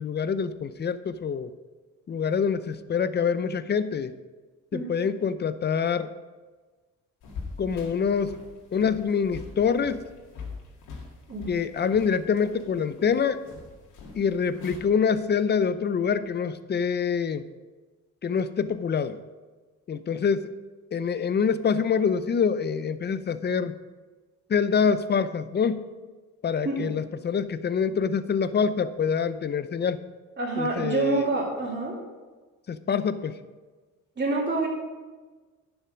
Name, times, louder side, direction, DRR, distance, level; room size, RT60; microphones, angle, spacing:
voice 1, 0.0-1.5 2.1-4.1 4.7-6.1 7.6-8.4 8.7-10.0 11.5-13.4 14.1-17.5 18.2-19.2 19.9-20.5 20.9-23.7 24.5-25.8 26.4-30.0 30.6-31.3 32.7-33.4, left 6 dB, 35° left, 13 dB, 0.6 m, -25 dB
sound 1, 7.2-14.8, left 4 dB, 90° left, 2.1 m, -43 dB
voice 2, 30.4-32.0 34.2-34.7, right 3 dB, 35° right, -3 dB, 2.6 m, -27 dB
10.0 x 7.2 x 5.1 m, 1.3 s
cardioid pair, 90°, 30 cm